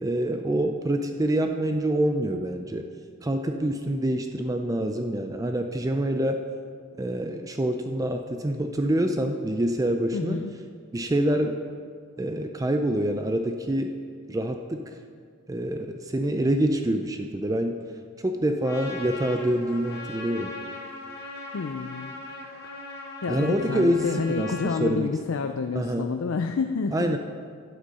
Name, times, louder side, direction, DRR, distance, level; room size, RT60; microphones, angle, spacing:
voice 1, 0.0-2.9 3.2-6.4 7.0-10.4 10.9-11.6 12.2-13.9 14.3-14.9 15.5-17.8 18.2-20.5 23.3-25.1 25.7-26.1 26.9-27.2, right 1 dB, 15° right, 6 dB, 0.4 m, -26 dB
voice 2, 10.1-10.6 21.5-22.1 23.2-27.2, left 4 dB, 75° left, 7 dB, 0.4 m, -29 dB
Trumpet, 18.6-24.8, left 3 dB, 50° left, 1.9 m, -39 dB
12.0 x 8.1 x 5.5 m, 2.1 s
head